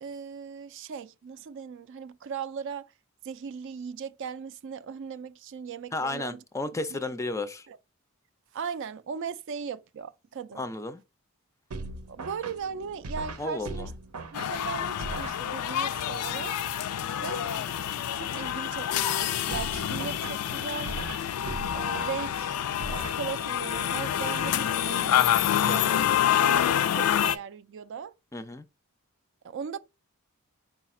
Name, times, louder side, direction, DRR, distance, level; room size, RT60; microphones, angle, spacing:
voice 1, 0.0-2.9 3.2-6.4 6.9-7.0 7.7-7.8 8.5-10.6 12.1-13.9 14.3-16.6 17.2-21.0 21.7-22.5 22.8-28.1 29.4-29.8, right 6 dB, 55° right, 0.3 m, -38 dB
voice 2, 5.9-7.7 10.6-11.0 13.4-13.9 28.3-28.6, left 2 dB, 15° left, 0.4 m, -33 dB
sound 1, 11.7-15.9 19.5-23.7, right 2 dB, 85° right, 0.7 m, -40 dB
sound 2, 14.3-27.3, left 10 dB, 85° left, 0.4 m, -27 dB
4.8 x 2.4 x 4.2 m
head